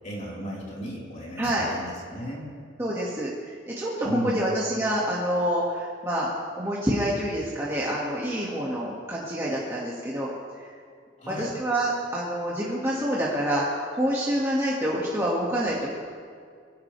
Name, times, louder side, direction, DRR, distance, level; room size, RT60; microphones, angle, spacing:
voice 1, 0.0-2.5 4.0-4.4 11.2-11.5, equal, 40° left, -6 dB, 4.4 m, -33 dB
voice 2, 1.4-1.7 2.8-3.3 3.7-6.3 6.6-10.3 11.3-15.9, equal, 15° right, -6 dB, 2.1 m, -27 dB
24.0 x 17.5 x 3.4 m, 2.2 s
head